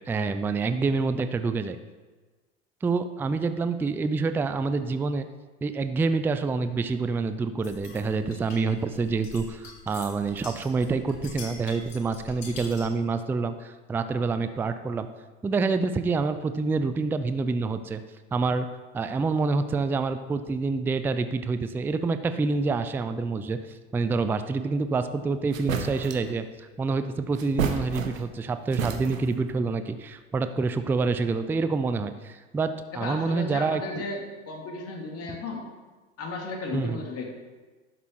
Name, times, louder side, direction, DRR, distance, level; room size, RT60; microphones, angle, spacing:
voice 1, 0.1-1.8 2.8-5.3 5.6-15.1 15.4-18.0 18.3-18.7 18.9-34.0 36.7-37.0, right 4 dB, 5° right, 10 dB, 0.3 m, -27 dB
sound 1, 7.6-13.0, left 4 dB, 65° left, 2.6 m, -44 dB
sound 2, 25.1-25.2 25.5-26.3 27.3-28.4 28.7-29.4, right 7 dB, 90° right, 1.1 m, -31 dB
voice 2, 32.9-34.2 34.5-35.6 36.2-37.2, left 3 dB, 40° left, 0 dB, 2.7 m, -34 dB
11.5 x 6.8 x 4.6 m, 1.3 s
hypercardioid pair, 95°, 39 cm